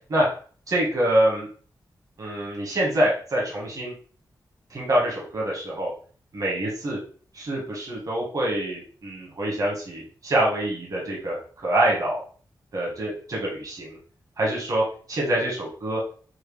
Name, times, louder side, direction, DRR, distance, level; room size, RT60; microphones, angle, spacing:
voice 1, 0.7-1.5 2.2-3.9 4.7-5.9 6.3-7.0 7.3-12.2 12.7-14.0 14.4-14.8 15.1-16.0, right 1 dB, 50° right, -4 dB, 1.5 m, -25 dB
4.5 x 2.9 x 3.3 m, 0.43 s
wide cardioid pair, 175°, 8 cm